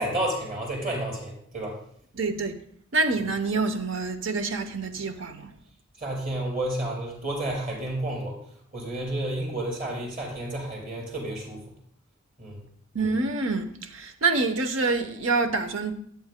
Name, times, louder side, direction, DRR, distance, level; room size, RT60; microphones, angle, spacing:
voice 1, 0.0-1.8 6.0-8.4 8.7-11.6 12.4-12.6, right 1 dB, 40° right, 4.4 m, -31 dB
voice 2, 2.1-2.6 2.9-5.5 12.9-15.9, right 3 dB, 75° right, 0.9 m, -26 dB
12.5 x 9.4 x 2.2 m
head